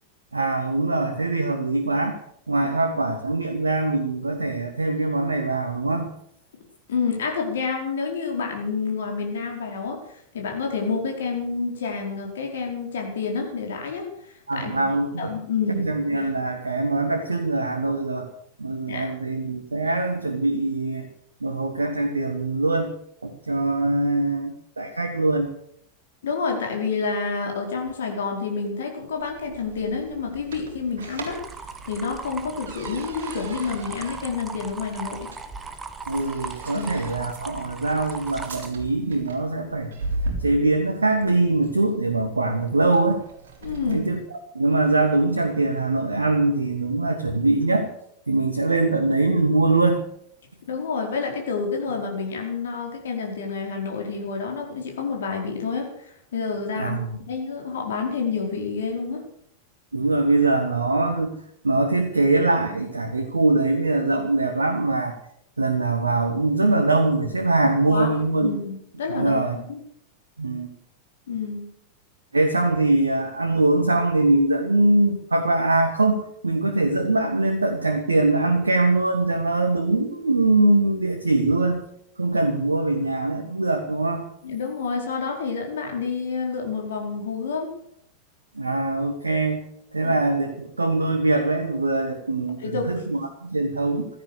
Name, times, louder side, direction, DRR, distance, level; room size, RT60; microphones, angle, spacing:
voice 1, 0.3-2.2 2.5-6.1 14.5-15.3 15.7-18.3 18.6-21.1 21.4-22.9 23.2-25.5 36.1-39.9 40.4-43.2 43.9-44.2 44.5-47.9 48.3-50.0 51.8-51.9 56.8-57.1 59.9-61.4 61.6-65.1 65.6-68.5 69.1-69.6 70.4-70.7 72.3-81.8 82.2-84.2 88.5-89.6 89.9-94.1, right 2 dB, 80° right, 6 dB, 1.6 m, -22 dB
voice 2, 6.9-10.0 10.3-14.1 14.5-14.9 15.2-15.9 18.9-19.1 26.2-31.4 31.8-35.3 36.7-36.9 43.6-44.1 50.7-57.0 57.3-59.2 67.9-68.1 68.4-69.8 71.3-71.7 84.4-87.7 90.0-90.1 92.6-93.1, left 5 dB, 60° left, 1 dB, 4.7 m, -28 dB
sound 1, 29.1-44.2, right 2 dB, 60° right, 3.9 m, -38 dB
sound 2, 31.3-38.7, right 4 dB, 15° right, 1.7 m, -38 dB
16.0 x 13.5 x 6.8 m, 0.71 s
figure-of-eight pair, 90°, 0 cm